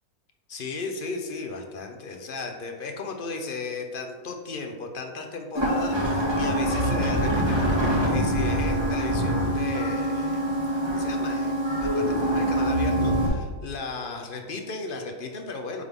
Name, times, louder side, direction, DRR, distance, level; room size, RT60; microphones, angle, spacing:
voice 1, 0.5-10.5 10.9-15.8, left 3 dB, 50° left, 3 dB, 0.7 m, -35 dB
sound 1, 5.5-13.3, equal, 15° right, 1.9 m, -24 dB
9.3 x 3.7 x 3.6 m, 1.4 s
omnidirectional pair, 1.6 m